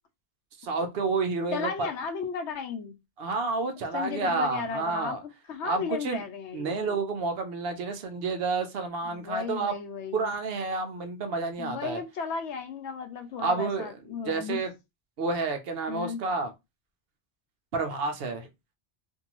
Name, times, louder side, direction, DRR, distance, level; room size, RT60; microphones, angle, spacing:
voice 1, 0.6-1.9 3.2-5.2 5.6-6.2 6.5-9.7 10.1-12.0 13.4-13.9 14.2-14.7 15.2-16.5 17.7-18.5, right 3 dB, 65° right, 0.8 m, -30 dB
voice 2, 1.5-3.0 3.9-5.2 5.5-7.0 9.0-10.4 11.6-14.6 15.9-16.2, left 5 dB, 85° left, 0.9 m, -34 dB
2.6 x 2.3 x 2.9 m
omnidirectional pair, 1.1 m